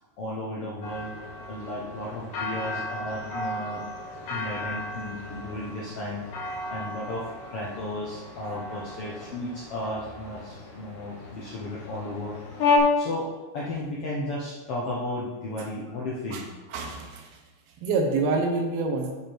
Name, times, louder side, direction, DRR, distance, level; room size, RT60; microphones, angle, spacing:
voice 1, 0.2-1.1 1.5-3.8 4.3-6.2 6.7-12.4 13.0-16.4, left 1 dB, 85° left, -5 dB, 1.2 m, -34 dB
sound 1, 0.8-12.8, left 3 dB, 55° left, 2.3 m, -33 dB
voice 2, 16.3-17.4 17.8-19.1, right 3 dB, 80° right, 3 dB, 2.8 m, -27 dB
9.9 x 5.3 x 4.5 m, 1.2 s
omnidirectional pair, 4.4 m